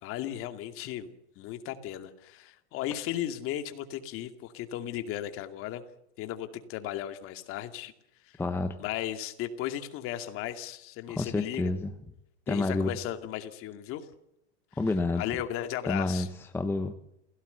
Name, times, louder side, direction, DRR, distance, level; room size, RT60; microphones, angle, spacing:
voice 1, 0.0-5.8 6.2-7.9 8.2-8.4 8.8-11.8 12.5-14.1 15.2-16.3, left 12 dB, 40° left, 8 dB, 2.4 m, -36 dB
voice 2, 8.4-8.8 11.1-11.9 12.5-12.9 14.8-15.2 15.9-16.3 16.5-16.9, left 2 dB, 5° left, 8 dB, 1.0 m, -28 dB
28.0 x 17.5 x 7.0 m, 0.82 s
supercardioid pair, 145°, 34 cm